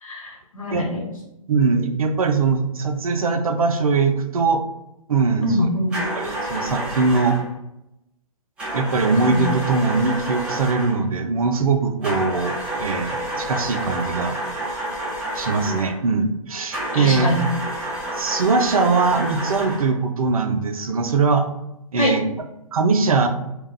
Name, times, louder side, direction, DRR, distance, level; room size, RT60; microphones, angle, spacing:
voice 1, 0.0-1.0 5.4-6.0 9.3-9.4 16.9-17.5 22.0-22.1, left 1 dB, 65° left, -1 dB, 1.1 m, -23 dB
voice 2, 1.5-4.6 5.1-5.7 6.1-7.4 8.7-14.4 15.3-17.3 18.1-21.5 21.9-22.2 22.7-23.3, right 4 dB, 70° right, 6 dB, 0.4 m, -21 dB
sound 1, 5.9-7.5 8.6-11.0 12.0-16.0 16.7-20.0, right 1 dB, 5° right, 0.5 m, -29 dB
2.3 x 2.0 x 3.7 m, 0.87 s
figure-of-eight pair, 130°, 19 cm